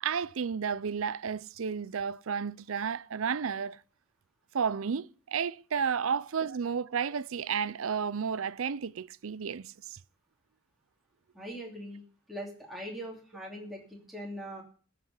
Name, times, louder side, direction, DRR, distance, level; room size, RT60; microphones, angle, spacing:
voice 1, 0.0-3.8 4.5-10.0, right 6 dB, 80° right, 0.5 m, -32 dB
voice 2, 11.3-12.0 12.3-14.6, equal, ahead, 2.9 m, -41 dB
14.0 x 5.9 x 8.1 m
head